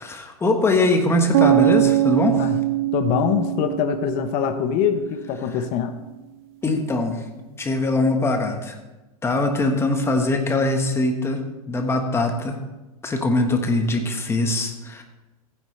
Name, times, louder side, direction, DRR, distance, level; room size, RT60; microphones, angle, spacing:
voice 1, 0.0-2.4 6.6-8.8 9.2-12.6 13.0-15.0, left 2 dB, 15° left, 4 dB, 1.4 m, -22 dB
sound 1, 1.3-5.3, right 16 dB, 60° right, 0.4 m, -22 dB
voice 2, 2.9-5.9, left 8 dB, 45° left, 7 dB, 1.0 m, -23 dB
15.5 x 9.7 x 3.3 m, 1.1 s
hypercardioid pair, 125°, 19 cm